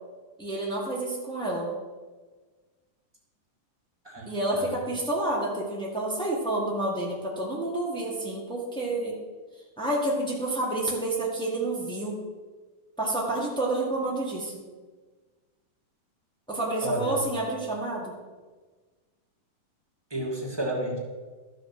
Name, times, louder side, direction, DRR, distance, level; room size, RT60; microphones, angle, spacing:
voice 1, 0.4-1.7 4.2-9.1 9.8-12.2 13.0-14.6 16.5-18.2, right 2 dB, 5° left, -4 dB, 0.3 m, -29 dB
voice 2, 4.5-4.8 16.8-17.2 20.1-21.0, right 1 dB, 10° right, -2 dB, 1.5 m, -31 dB
13.0 x 6.9 x 6.0 m, 1.4 s
omnidirectional pair, 3.8 m